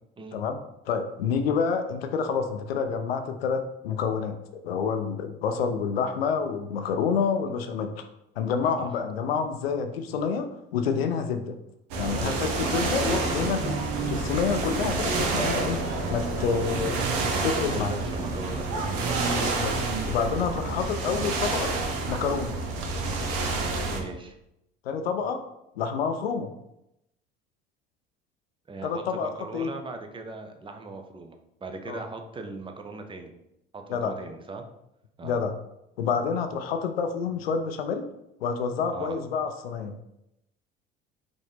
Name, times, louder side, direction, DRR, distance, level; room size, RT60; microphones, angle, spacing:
voice 1, 0.9-4.4 4.6-8.1 8.4-11.6 12.0-13.8 14.1-17.1 17.4-17.9 19.6-19.8 20.1-21.7 22.1-22.5 24.8-25.4 25.8-26.5 28.8-29.7 31.9-32.0 33.9-34.2 35.2-35.5 36.0-38.1 38.4-40.0, left 6 dB, 80° left, 7 dB, 0.4 m, -28 dB
sound 1, 11.9-24.0, right 3 dB, 60° right, 0.9 m, -28 dB
voice 2, 17.3-19.3 23.9-24.4 28.7-33.3 33.7-34.6 35.2-35.4 38.9-39.2, right 3 dB, 15° right, 5 dB, 0.6 m, -39 dB
4.9 x 2.7 x 3.4 m, 0.84 s
figure-of-eight pair, 60°, 30 cm